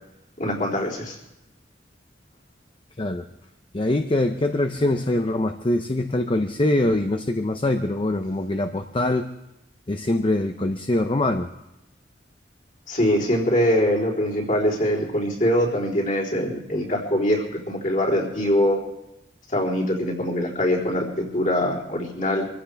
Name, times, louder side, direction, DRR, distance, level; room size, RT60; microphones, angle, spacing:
voice 1, 0.4-1.2 12.9-18.8 19.5-22.5, equal, 45° left, -3 dB, 3.7 m, -23 dB
voice 2, 3.7-9.3 9.9-11.5, left 1 dB, 30° left, 6 dB, 0.7 m, -23 dB
23.5 x 15.5 x 3.5 m, 0.90 s
head